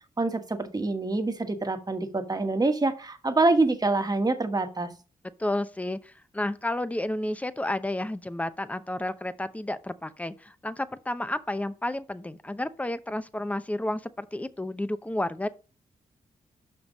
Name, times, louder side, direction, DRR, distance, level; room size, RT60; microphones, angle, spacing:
voice 1, 0.2-4.9, right 2 dB, 25° right, 1.4 m, -26 dB
voice 2, 5.4-15.5, left 1 dB, 10° left, 0.7 m, -31 dB
5.7 x 5.4 x 5.2 m
cardioid pair, 55°, 14 cm